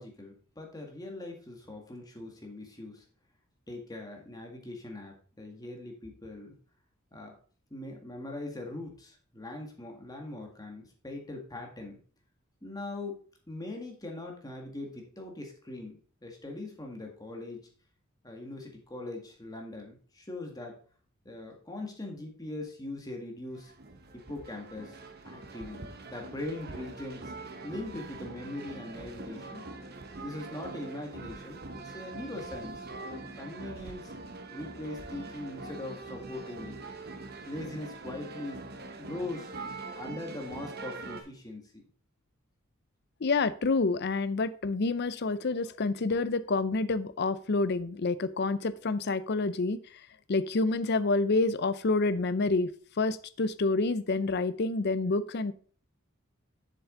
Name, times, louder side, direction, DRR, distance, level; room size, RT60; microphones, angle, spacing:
voice 1, 0.0-3.0 3.7-6.5 7.1-7.3 7.7-12.0 12.6-13.2 13.5-17.6 18.2-20.8 21.3-23.7 24.1-25.0 25.2-29.7 30.2-34.1 34.5-36.8 37.5-38.6 39.0-39.5 40.0-41.8, left 2 dB, 20° left, 1 dB, 1.8 m, -41 dB
sound 1, 23.5-41.2, right 3 dB, 50° right, 1.0 m, -43 dB
voice 2, 43.2-49.8 50.3-52.7 53.0-55.5, left 3 dB, 55° left, 15 dB, 0.6 m, -28 dB
7.3 x 6.9 x 3.8 m, 0.43 s
head